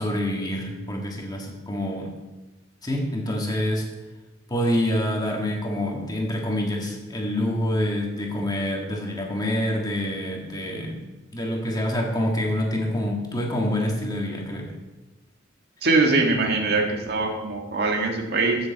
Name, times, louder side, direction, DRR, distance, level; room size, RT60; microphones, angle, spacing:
voice 1, 0.0-2.1 2.8-3.9 4.5-11.0 11.3-14.7, left 1 dB, 20° left, 0 dB, 1.9 m, -26 dB
voice 2, 15.8-18.7, right 3 dB, 55° right, 1 dB, 1.8 m, -22 dB
14.5 x 6.9 x 4.1 m, 1.1 s
head